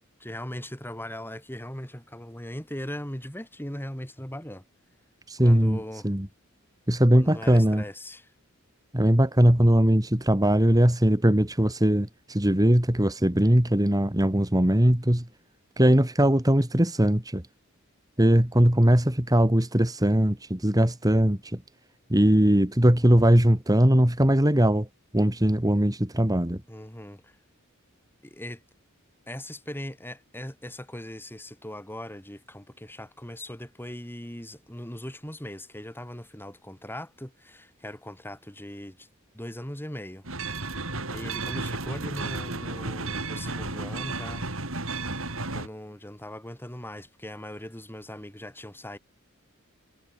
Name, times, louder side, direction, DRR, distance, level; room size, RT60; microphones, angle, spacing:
voice 1, 0.2-4.6 5.4-6.1 7.1-8.3 26.7-27.4 28.2-28.6 29.3-39.1 39.3-40.2 41.1-44.5 45.5-49.0, left 1 dB, 10° left, 7.2 m, -39 dB
voice 2, 5.3-6.3 6.9-7.8 8.9-15.3 15.8-17.4 18.2-21.6 22.1-24.9 25.1-26.6, equal, 15° right, 2.2 m, -20 dB
sound 1, 40.2-45.7, right 3 dB, 70° right, 6.3 m, -33 dB
head